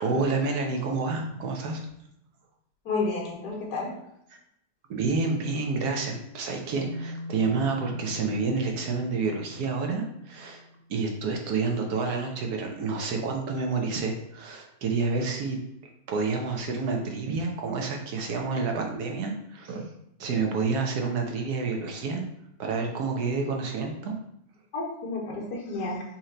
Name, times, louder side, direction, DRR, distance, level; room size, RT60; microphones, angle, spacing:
voice 1, 0.0-1.8 4.9-10.6 10.9-15.6 16.1-19.9 20.2-22.2 22.6-24.1, right 4 dB, 75° right, 2 dB, 1.3 m, -29 dB
voice 2, 2.8-3.9 24.7-26.0, left 3 dB, 85° left, -2 dB, 1.7 m, -31 dB
sound 1, 6.8-11.1, left 2 dB, 10° right, 1.4 m, -41 dB
4.4 x 2.9 x 3.8 m, 0.79 s
omnidirectional pair, 1.7 m